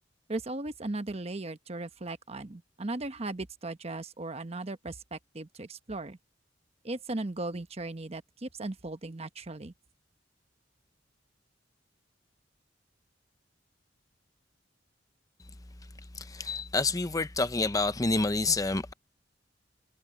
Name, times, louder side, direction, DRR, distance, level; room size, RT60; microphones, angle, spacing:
voice 1, 0.3-6.2 6.8-9.7, right 2 dB, 35° right, 1.0 m, -37 dB
voice 2, 16.2-18.9, left 3 dB, 20° left, 0.6 m, -28 dB
head